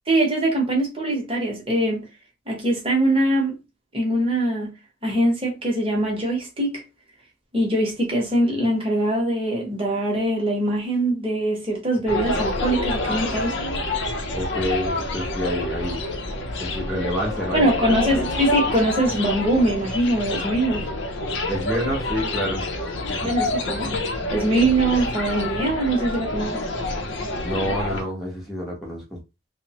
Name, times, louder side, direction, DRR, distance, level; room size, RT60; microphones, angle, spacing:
voice 1, 0.1-2.1 2.5-3.5 3.9-4.7 5.0-6.8 7.5-13.6 17.5-20.9 23.2-26.6, right 1 dB, 30° right, 0.9 m, -22 dB
sound 1, 12.1-28.0, left 2 dB, 65° left, 0.6 m, -27 dB
voice 2, 14.3-16.0 16.6-18.3 21.5-22.6 23.1-23.3 27.4-29.2, equal, ahead, 0.8 m, -28 dB
3.0 x 2.1 x 2.8 m
head